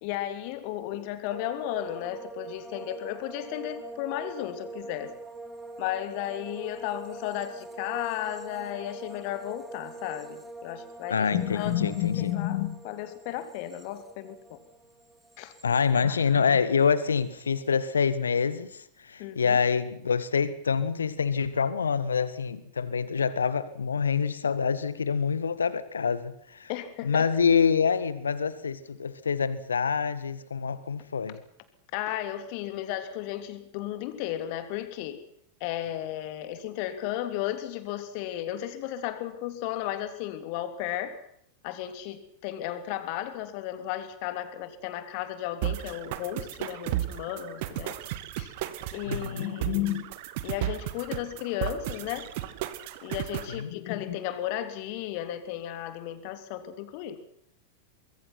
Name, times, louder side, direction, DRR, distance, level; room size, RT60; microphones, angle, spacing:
voice 1, 0.0-5.1 5.8-14.6 15.4-15.5 16.0-16.4 19.2-19.6 26.7-27.3 31.9-35.2 35.6-41.2 41.6-47.9 48.4-48.5 48.9-50.1 50.4-52.3 53.0-57.2, left 12 dB, 45° left, 10 dB, 3.2 m, -34 dB
sound 1, 1.3-16.5 16.8-17.4, right 3 dB, 10° right, 4.2 m, -44 dB
voice 2, 11.1-12.3 15.6-26.7 27.0-31.4 49.1-49.5 53.6-53.7, left 6 dB, 70° left, 15 dB, 1.7 m, -26 dB
sound 2, 45.6-53.6, right 14 dB, 50° right, 2.0 m, -34 dB
24.5 x 22.5 x 6.1 m, 0.66 s
figure-of-eight pair, 90°, 0 cm